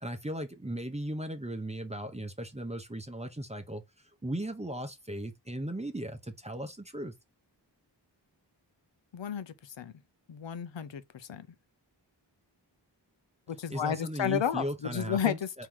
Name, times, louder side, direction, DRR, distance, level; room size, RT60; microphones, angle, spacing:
voice 1, 0.0-3.8 4.2-7.1 13.7-15.4, right 1 dB, 15° right, 0.8 m, -37 dB
voice 2, 9.1-9.9 10.3-11.5 13.5-15.7, left 9 dB, 90° left, 0.7 m, -32 dB
4.6 x 2.9 x 3.7 m
wide cardioid pair, 80°, 43 cm